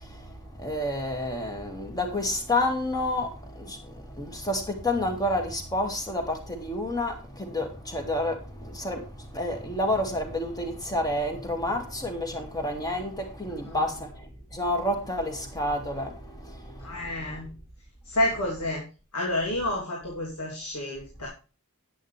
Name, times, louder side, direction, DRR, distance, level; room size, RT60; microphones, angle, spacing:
voice 1, 0.0-17.1, left 1 dB, 15° left, 2.3 m, -30 dB
voice 2, 16.8-17.5 18.0-18.8 19.1-21.3, left 1 dB, 90° left, 3.1 m, -29 dB
10.5 x 9.7 x 3.4 m
head